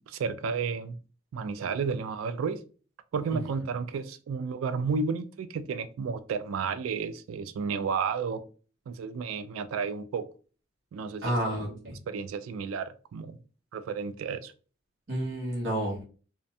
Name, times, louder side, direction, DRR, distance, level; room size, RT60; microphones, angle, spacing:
voice 1, 0.1-1.0 1.3-2.6 3.1-8.4 8.9-10.3 10.9-11.4 12.1-13.4 13.7-14.5, right 5 dB, 85° right, 0.3 m, -32 dB
voice 2, 11.2-12.0 15.1-16.0, right 1 dB, 60° right, 0.9 m, -30 dB
2.5 x 2.1 x 2.6 m
head